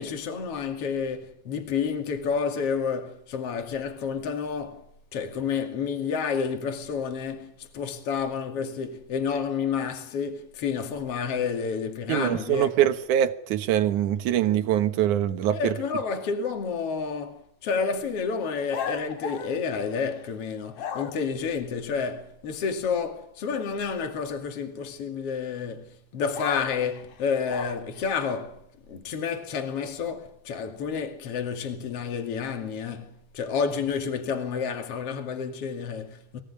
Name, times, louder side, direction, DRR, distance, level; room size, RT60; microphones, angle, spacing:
voice 1, 0.0-4.8 5.1-12.7 15.5-28.6 28.9-36.4, left 6 dB, 50° left, 3.2 m, -30 dB
voice 2, 12.1-15.7, right 11 dB, 70° right, 2.8 m, -23 dB
sound 1, 18.7-20.3 20.7-21.4 26.3-28.1, left 8 dB, 80° left, 3.3 m, -35 dB
24.0 x 17.5 x 9.8 m
omnidirectional pair, 3.7 m